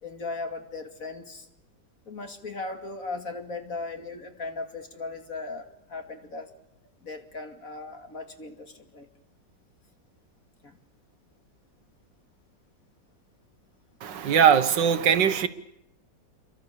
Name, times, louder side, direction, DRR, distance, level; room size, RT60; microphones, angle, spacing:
voice 1, 0.0-1.5 2.1-6.5 7.0-9.1 10.6-10.8, left 3 dB, 50° left, 2.8 m, -37 dB
voice 2, 14.0-15.5, right 8 dB, 75° right, 1.8 m, -20 dB
29.0 x 23.5 x 6.9 m
omnidirectional pair, 2.0 m